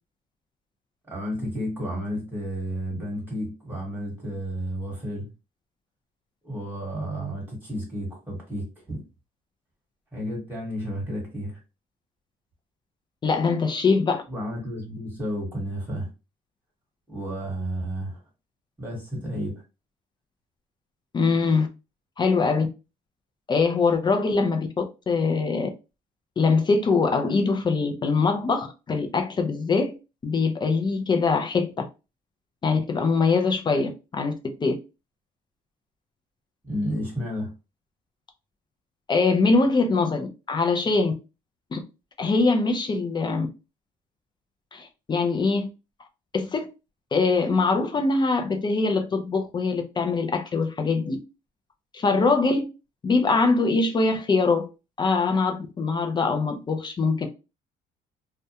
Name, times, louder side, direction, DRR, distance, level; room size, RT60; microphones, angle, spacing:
voice 1, 1.1-5.3 6.4-9.0 10.1-11.6 14.3-16.1 17.1-18.2 18.8-19.6 36.7-37.5, equal, 10° right, 1.2 m, -32 dB
voice 2, 13.2-14.2 21.1-21.7 22.2-22.7 23.5-25.7 26.4-29.9 30.2-31.7 32.6-34.3 34.6-34.8 39.1-41.1 41.7-41.8 42.2-43.5 44.7-45.7 46.3-46.7 47.1-51.2 51.9-52.6 53.0-54.7 55.0-57.3, left 4 dB, 25° left, 0.4 m, -23 dB
2.3 x 2.1 x 2.7 m
cardioid pair, 110°, 17 cm